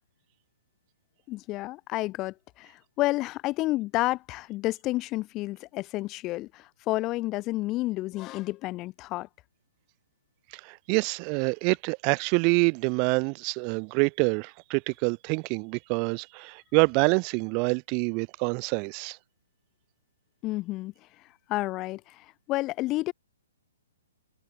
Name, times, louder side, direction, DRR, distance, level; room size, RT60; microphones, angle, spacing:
voice 1, 1.3-9.3 20.4-20.9 21.5-23.1, left 18 dB, 25° left, 4.2 m, -30 dB
voice 2, 10.6-19.2, right 37 dB, 35° right, 2.0 m, -26 dB
figure-of-eight pair, 130°, 0 cm